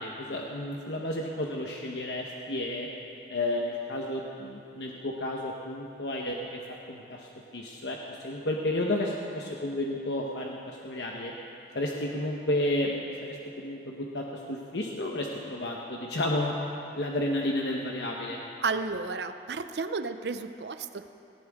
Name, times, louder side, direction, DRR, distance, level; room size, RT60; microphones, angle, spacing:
voice 1, 0.0-2.9 3.3-11.3 11.7-16.5 16.9-18.4, left 1 dB, 85° left, -1 dB, 1.2 m, -32 dB
voice 2, 18.6-21.1, right 4 dB, 75° right, 10 dB, 0.6 m, -32 dB
18.0 x 18.0 x 3.7 m, 2.7 s
head